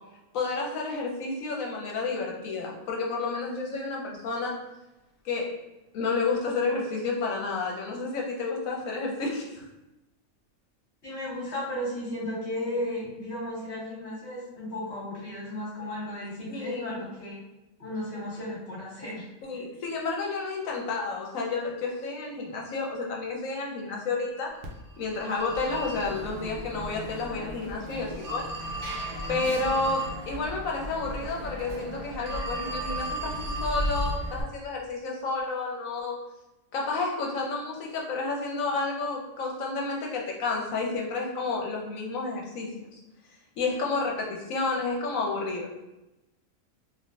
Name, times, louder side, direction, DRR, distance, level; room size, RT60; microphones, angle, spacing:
voice 1, 0.3-4.6 5.2-5.6 5.9-9.7 16.5-17.0 19.4-24.5 25.0-28.5 29.3-36.2 36.7-42.9 43.6-45.7, left 3 dB, 80° left, -1 dB, 1.1 m, -30 dB
voice 2, 11.0-17.4 17.8-19.3, left 1 dB, 55° left, -6 dB, 1.5 m, -34 dB
Telephone, 24.6-34.4, right 1 dB, 70° right, 0.9 m, -35 dB
3.3 x 2.5 x 2.6 m, 0.96 s
omnidirectional pair, 1.4 m